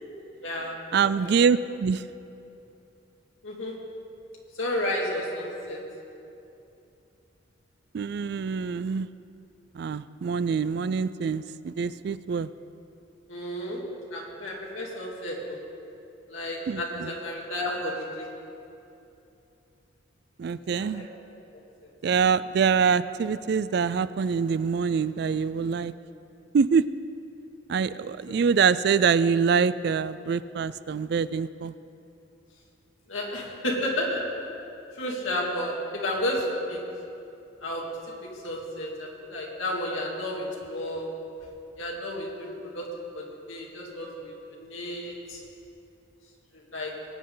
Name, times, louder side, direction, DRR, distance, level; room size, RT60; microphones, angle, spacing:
voice 1, 0.4-1.4 3.4-3.8 4.5-5.9 13.3-15.6 16.3-18.3 20.7-21.0 33.1-34.4 35.0-36.9 37.6-38.0 38.4-41.2 41.8-44.3 44.6-45.4 46.5-47.0, left 1 dB, 85° left, -2 dB, 2.4 m, -32 dB
voice 2, 0.9-2.0 7.9-9.1 9.7-12.5 16.7-17.1 20.4-21.1 22.0-25.9 26.5-26.9 27.7-31.7, right 6 dB, 55° right, 15 dB, 0.3 m, -25 dB
20.5 x 8.8 x 4.0 m, 2.8 s
head